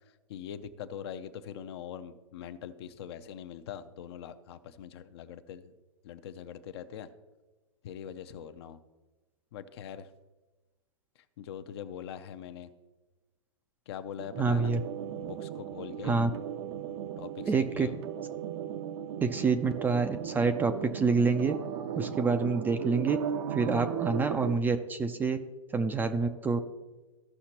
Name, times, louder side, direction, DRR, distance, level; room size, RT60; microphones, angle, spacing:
voice 1, 0.3-5.7 6.0-7.1 7.8-8.8 9.5-10.1 11.4-12.7 13.9-14.7 15.2-16.2 17.2-18.0, left 9 dB, 50° left, 11 dB, 0.6 m, -42 dB
sound 1, 14.2-24.5, right 9 dB, 50° right, 0.6 m, -37 dB
voice 2, 14.4-14.8 16.0-16.3 17.5-17.9 19.2-21.6 21.9-23.2 23.5-25.4 25.7-26.6, right 4 dB, 10° right, 8 dB, 0.4 m, -27 dB
15.0 x 5.7 x 2.9 m, 1.2 s
hypercardioid pair, 120°, 17 cm